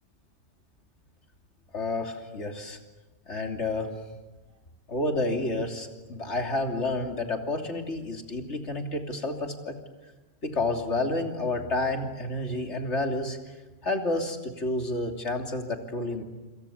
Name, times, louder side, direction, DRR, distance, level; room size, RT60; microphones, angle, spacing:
voice 1, 1.7-2.8 3.3-3.9 4.9-9.8 10.4-13.4 13.8-16.2, left 2 dB, 65° left, 3 dB, 3.3 m, -30 dB
27.5 x 27.5 x 7.2 m, 1.2 s
omnidirectional pair, 1.3 m